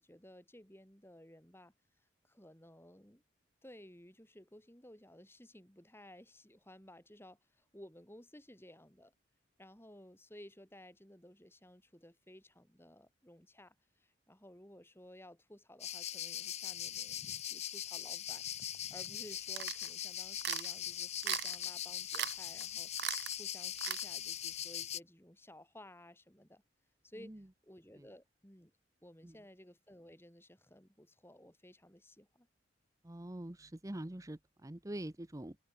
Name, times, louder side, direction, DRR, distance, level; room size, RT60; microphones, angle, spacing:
voice 1, 0.0-1.7 2.2-3.2 3.6-9.1 9.6-18.4 18.9-26.6 27.0-27.3 27.6-28.7 29.0-32.5, left 1 dB, 10° left, 5.5 m, -56 dB
sound 1, 15.8-25.0, left 11 dB, 35° left, 0.6 m, -41 dB
sound 2, 19.6-19.9 20.4-20.7 21.2-21.6 22.1-22.3 22.6-22.7 23.0-23.3 23.8-24.0, right 12 dB, 55° right, 0.5 m, -37 dB
voice 2, 33.0-35.6, right 1 dB, 15° right, 0.8 m, -45 dB
open air
head